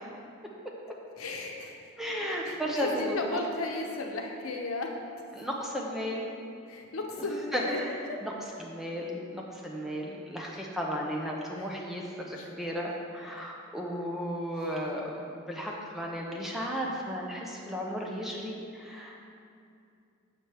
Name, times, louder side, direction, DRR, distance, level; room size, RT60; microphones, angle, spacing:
voice 1, 1.2-1.9 2.4-4.9 6.7-7.8 8.1-8.2 11.6-11.7 12.3-12.5, left 2 dB, 90° left, 1 dB, 0.8 m, -35 dB
voice 2, 2.0-3.4 5.4-6.3 7.5-7.9 8.2-8.3 8.6-19.3, equal, ahead, -2 dB, 0.5 m, -34 dB
6.7 x 5.8 x 3.3 m, 2.4 s
head